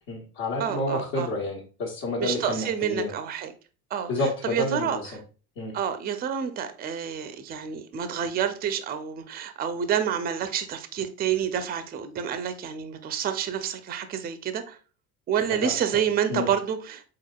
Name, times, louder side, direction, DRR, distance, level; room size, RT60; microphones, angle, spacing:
voice 1, 0.1-3.1 4.1-5.1 5.6-5.7 15.5-15.7 16.3-16.5, left 2 dB, 60° left, 1.4 m, -29 dB
voice 2, 0.6-1.3 2.2-3.5 3.9-5.2 5.7-14.8 15.3-17.1, right 8 dB, 20° right, 0.4 m, -28 dB
4.7 x 3.8 x 2.3 m
hypercardioid pair, 70°, 47 cm